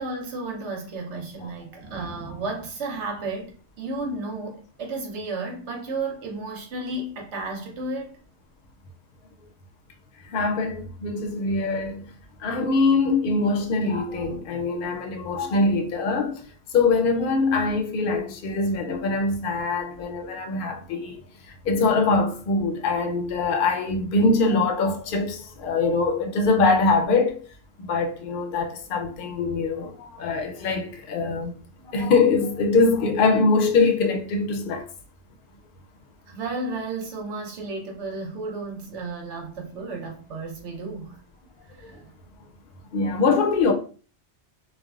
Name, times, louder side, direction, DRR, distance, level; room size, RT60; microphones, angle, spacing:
voice 1, 0.0-8.2 36.3-41.2 41.8-42.1, right 3 dB, 75° right, 1.1 m, -33 dB
voice 2, 10.2-12.0 12.4-16.4 16.7-27.4 27.8-31.6 31.8-34.9 41.8-41.9 42.9-43.7, left 3 dB, 60° left, 0.6 m, -23 dB
3.3 x 2.1 x 2.3 m
omnidirectional pair, 1.2 m